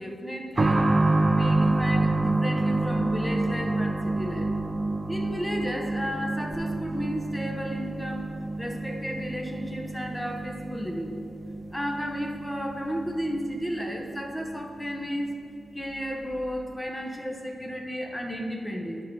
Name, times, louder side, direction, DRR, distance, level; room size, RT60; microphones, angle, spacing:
voice 1, 0.0-4.5 5.1-11.2 11.7-15.4 15.7-19.0, equal, 5° left, 2 dB, 0.9 m, -33 dB
sound 1, 0.6-15.0 15.3-15.4 16.3-16.4, right 2 dB, 30° right, 0.4 m, -28 dB
9.3 x 3.7 x 5.9 m, 2.3 s
wide cardioid pair, 95°, 0 cm